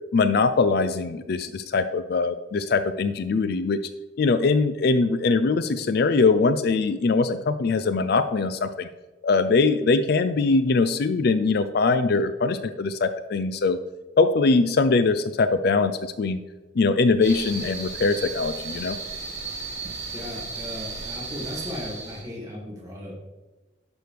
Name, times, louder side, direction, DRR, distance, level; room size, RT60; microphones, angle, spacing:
voice 1, 0.1-3.8 4.2-8.9 9.2-13.8 14.2-16.4 16.8-19.0, left 4 dB, 55° left, 11 dB, 0.4 m, -22 dB
sound 1, 17.2-22.2, right 4 dB, 35° right, 1.7 m, -35 dB
voice 2, 20.1-23.2, left 1 dB, 15° right, -5 dB, 2.7 m, -36 dB
11.5 x 6.1 x 3.4 m, 1.2 s
head